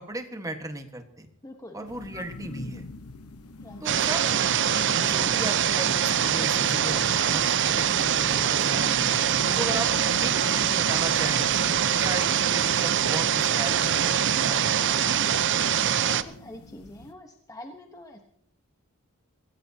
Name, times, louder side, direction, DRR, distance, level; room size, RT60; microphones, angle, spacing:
voice 1, 0.0-1.3 1.7-2.9 3.8-4.3 5.0-9.1 9.6-9.9 10.2-11.7 12.0-14.8, right 2 dB, 15° right, 6 dB, 1.4 m, -36 dB
voice 2, 1.4-1.9 3.6-3.9 16.0-18.2, left 1 dB, 15° left, 3 dB, 1.0 m, -45 dB
sound 1, 1.8-17.1, left 3 dB, 80° left, 1.1 m, -44 dB
sound 2, 3.9-16.2, right 9 dB, 55° right, 0.7 m, -23 dB
25.0 x 16.5 x 2.8 m, 0.67 s
head